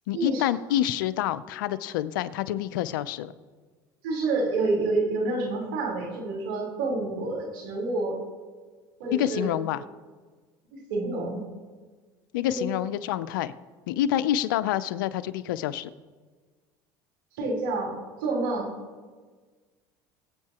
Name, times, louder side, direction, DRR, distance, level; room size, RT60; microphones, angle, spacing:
voice 1, 0.1-3.3 9.1-9.8 12.3-13.5 13.9-15.9, left 12 dB, 90° left, 15 dB, 0.5 m, -27 dB
voice 2, 4.0-8.2 9.0-9.5 10.7-11.4 12.5-12.7 17.4-17.9 18.2-18.7, right 2 dB, 85° right, -2 dB, 3.9 m, -28 dB
21.5 x 8.4 x 2.9 m, 1.4 s
supercardioid pair, 95°, 11 cm